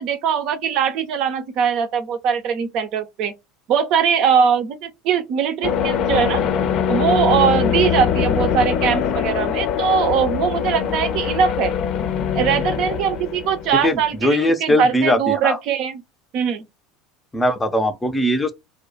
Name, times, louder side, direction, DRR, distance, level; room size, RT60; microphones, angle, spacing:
voice 1, 0.0-3.3 3.7-6.4 6.9-11.7 12.3-16.0 16.3-16.6, right 7 dB, 55° right, 0.5 m, -21 dB
sound 1, 5.6-14.2, left 8 dB, 55° left, 0.6 m, -22 dB
voice 2, 13.8-15.6 17.3-18.5, left 1 dB, 15° left, 0.5 m, -20 dB
2.3 x 2.1 x 3.8 m
figure-of-eight pair, 70°, 0 cm